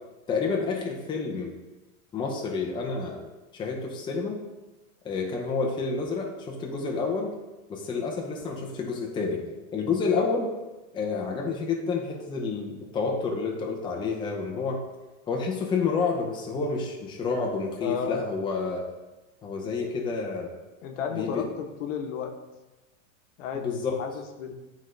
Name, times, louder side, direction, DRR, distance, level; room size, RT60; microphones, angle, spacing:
voice 1, 0.3-1.5 2.1-3.2 3.5-4.4 5.0-7.3 7.7-9.4 9.7-10.5 10.9-14.8 15.3-18.8 19.4-20.5 21.1-21.5 23.5-24.0, left 4 dB, 10° left, 0 dB, 0.6 m, -29 dB
voice 2, 17.8-18.2 20.8-22.3 23.4-23.7 24.0-24.5, left 6 dB, 65° left, 4 dB, 1.0 m, -33 dB
8.9 x 3.8 x 3.2 m, 1.1 s
supercardioid pair, 145°, 40 cm